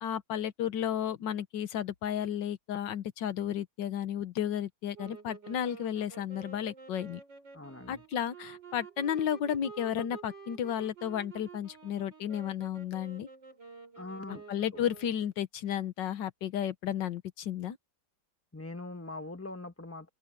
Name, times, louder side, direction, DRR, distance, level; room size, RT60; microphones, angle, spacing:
voice 1, 0.0-7.2 7.9-13.3 14.5-17.8, left 9 dB, 80° left, 1.8 m, -33 dB
sound 1, 4.9-15.3, right 5 dB, 85° right, 6.2 m, -50 dB
voice 2, 7.5-8.0 14.0-14.4 14.7-14.8 18.5-20.1, left 2 dB, 10° left, 1.3 m, -42 dB
open air
omnidirectional pair, 1.9 m